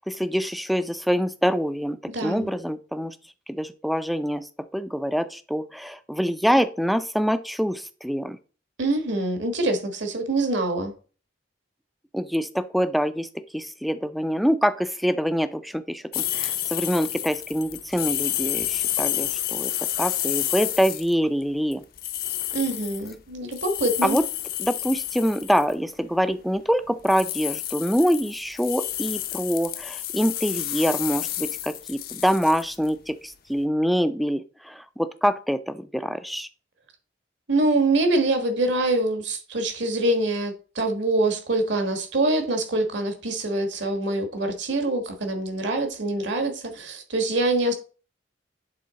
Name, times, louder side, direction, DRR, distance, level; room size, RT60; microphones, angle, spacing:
voice 1, 0.0-3.2 3.5-8.4 12.1-13.3 13.5-19.7 20.0-21.8 24.0-24.2 24.6-36.5, equal, ahead, 0.4 m, -25 dB
voice 2, 2.1-2.5 8.8-10.9 22.5-24.2 37.5-47.7, right 2 dB, 70° right, 1.4 m, -25 dB
sound 1, 16.1-21.1 21.7-25.7 27.0-32.9, left 13 dB, 50° left, 0.6 m, -30 dB
8.6 x 3.8 x 4.0 m
head